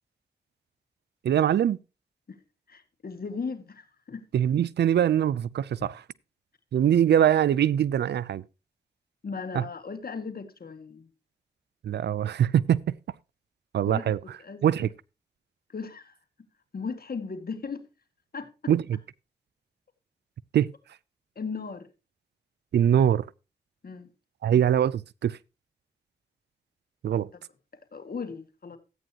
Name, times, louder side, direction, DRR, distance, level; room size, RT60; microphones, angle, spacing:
voice 1, 1.2-1.8 4.3-6.0 6.7-8.4 9.5-9.6 11.8-12.8 13.7-14.2 14.6-14.9 18.7-18.8 20.5-20.7 22.7-23.2 24.4-25.4 27.0-27.3, right 10 dB, 85° right, 0.4 m, -22 dB
voice 2, 2.7-4.2 9.2-11.1 13.8-14.9 15.7-16.2 16.7-17.9 18.3-18.7 21.4-21.9 23.8-24.1 27.9-28.8, left 5 dB, 60° left, 1.9 m, -37 dB
13.5 x 9.0 x 2.9 m
cardioid pair, 45°, 17 cm